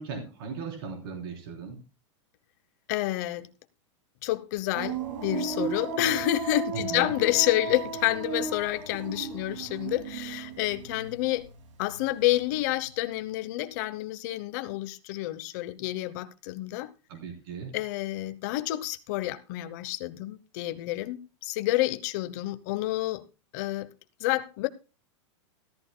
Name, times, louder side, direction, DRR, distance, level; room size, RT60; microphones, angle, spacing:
voice 1, 0.0-1.8 6.7-7.1 17.1-17.7, right 5 dB, 50° right, 3.5 m, -37 dB
voice 2, 2.9-3.5 4.2-11.5 11.8-16.9 17.7-23.2 23.5-23.9 24.2-24.7, left 16 dB, 35° left, 0.9 m, -29 dB
sound 1, 4.7-11.6 11.9-12.6, right 5 dB, 75° right, 2.4 m, -35 dB
16.5 x 13.5 x 2.2 m
supercardioid pair, 180°, 16 cm